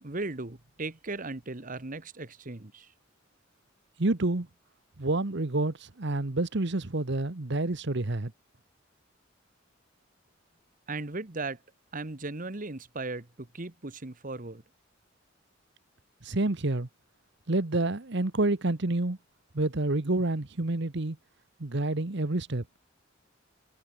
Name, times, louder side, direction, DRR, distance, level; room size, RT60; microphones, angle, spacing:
voice 1, 0.0-2.9 10.9-11.6 11.9-14.6, right 3 dB, 40° right, 1.5 m, -37 dB
voice 2, 4.0-4.5 5.0-8.3 16.2-16.9 17.5-19.2 19.5-21.2 21.6-22.6, right 2 dB, 60° right, 1.2 m, -28 dB
head